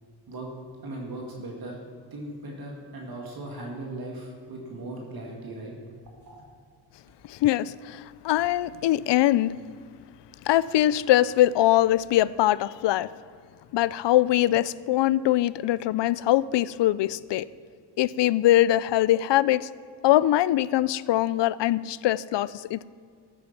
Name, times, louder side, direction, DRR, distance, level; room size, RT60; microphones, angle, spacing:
voice 1, 0.8-1.8 2.1-5.7 6.2-6.4, right 2 dB, 55° right, -1 dB, 2.2 m, -38 dB
voice 2, 7.3-9.5 10.5-13.1 13.7-17.5 18.0-19.7 20.0-22.9, left 14 dB, 80° left, 19 dB, 0.5 m, -22 dB
14.5 x 8.6 x 5.9 m, 2.2 s
wide cardioid pair, 125°, 42 cm